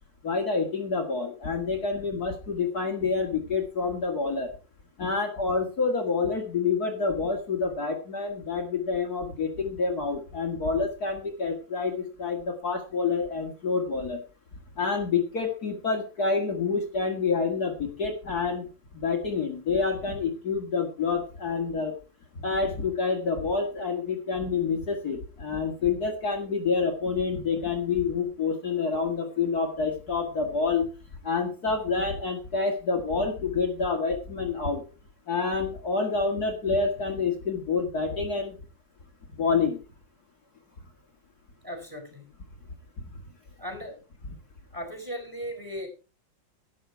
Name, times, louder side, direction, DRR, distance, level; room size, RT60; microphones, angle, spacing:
voice 1, 0.2-4.5 5.0-14.2 14.8-21.9 22.4-30.9 31.2-34.8 35.3-38.6 39.3-39.8 43.0-43.1, left 4 dB, 50° left, 1 dB, 2.5 m, -28 dB
voice 2, 41.6-42.3 43.6-44.0 44.7-45.9, equal, 10° right, 3 dB, 4.7 m, -37 dB
12.0 x 10.0 x 4.6 m, 0.34 s
omnidirectional pair, 2.1 m